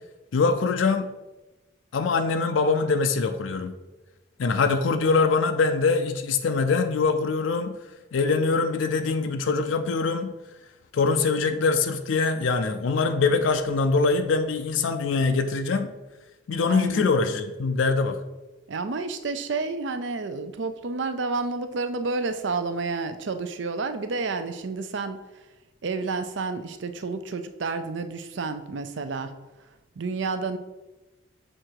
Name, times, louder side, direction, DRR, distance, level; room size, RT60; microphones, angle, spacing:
voice 1, 0.3-1.1 1.9-3.7 4.4-7.8 8.1-10.3 10.9-15.9 16.5-18.2, left 4 dB, 75° left, 7 dB, 0.4 m, -23 dB
voice 2, 16.7-17.0 18.7-25.2 25.8-29.3 30.0-30.6, right 4 dB, 70° right, 9 dB, 0.5 m, -30 dB
6.6 x 3.7 x 4.5 m, 1.1 s
head